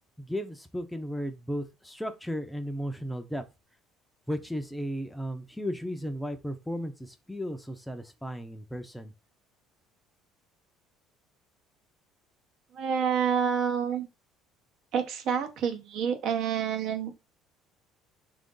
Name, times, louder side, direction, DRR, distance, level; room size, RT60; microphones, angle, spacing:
voice 1, 0.2-3.4 4.3-9.1, equal, 5° left, 0.5 m, -35 dB
voice 2, 12.7-14.1 14.9-17.1, right 7 dB, 60° right, 0.8 m, -28 dB
3.7 x 2.6 x 3.7 m
cardioid pair, 120°, 0 cm